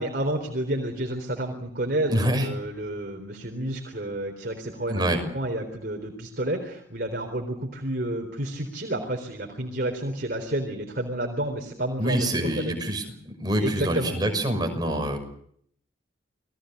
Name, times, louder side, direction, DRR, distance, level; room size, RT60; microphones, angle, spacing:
voice 1, 0.0-5.0 5.3-12.8 13.6-14.1, right 1 dB, 50° right, 3 dB, 3.9 m, -30 dB
voice 2, 2.1-2.5 4.9-5.2 12.0-15.2, right 1 dB, 20° right, 5 dB, 6.1 m, -26 dB
29.0 x 21.0 x 6.8 m, 0.65 s
head